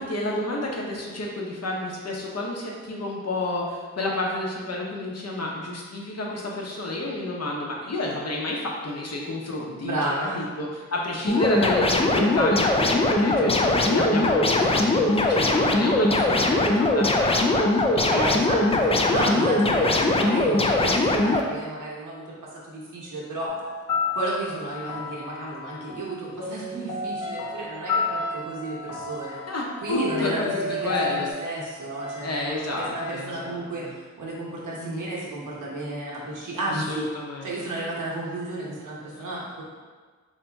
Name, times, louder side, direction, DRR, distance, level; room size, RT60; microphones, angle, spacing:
voice 1, 0.0-16.4 16.8-18.4 19.1-19.4 29.5-31.3 32.2-33.9 34.8-35.0 36.7-37.7, left 1 dB, 55° left, -2 dB, 0.8 m, -30 dB
voice 2, 9.8-10.4 11.2-11.5 18.1-23.6 24.1-29.4 29.8-37.0 37.4-39.6, right 2 dB, 90° right, -5 dB, 1.0 m, -32 dB
sound 1, 11.3-21.4, left 2 dB, 20° left, 0.3 m, -21 dB
sound 2, 23.5-31.3, left 4 dB, 85° left, 0.7 m, -31 dB
Wind instrument woodwind instrument, 27.2-33.4, right 3 dB, 40° right, 0.7 m, -40 dB
3.9 x 2.8 x 3.4 m, 1.5 s
wide cardioid pair, 80°, 30 cm